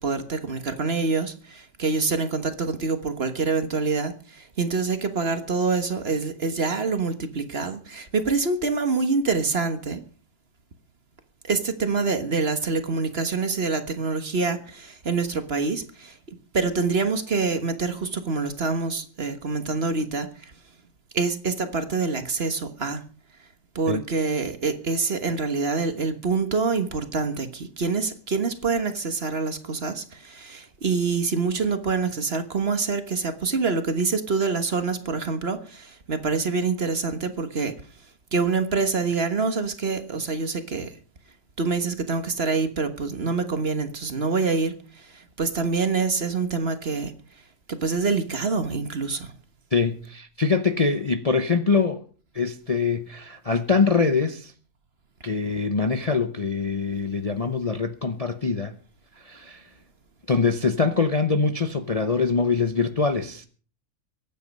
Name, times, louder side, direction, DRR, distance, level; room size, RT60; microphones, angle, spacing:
voice 1, 0.0-10.0 11.5-20.5 21.1-23.0 23.7-37.7 38.3-40.9 41.6-47.1 47.7-49.3, right 4 dB, 40° right, 1.6 m, -26 dB
voice 2, 49.7-52.0 52.3-54.5 55.2-58.7 59.2-59.7 60.3-63.5, left 4 dB, 30° left, 0.7 m, -24 dB
23.0 x 9.4 x 5.4 m
omnidirectional pair, 1.6 m